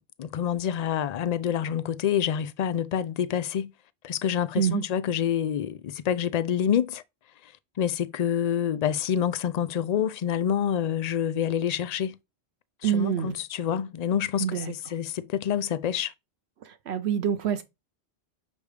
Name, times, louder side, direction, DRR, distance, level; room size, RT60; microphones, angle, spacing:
voice 1, 0.2-3.7 4.0-7.0 7.4-7.5 7.8-12.1 12.8-16.1, left 9 dB, 65° left, 0.4 m, -27 dB
voice 2, 12.8-13.4 14.4-14.7 16.6-17.6, right 8 dB, 70° right, 0.9 m, -26 dB
6.7 x 3.3 x 4.9 m
omnidirectional pair, 1.2 m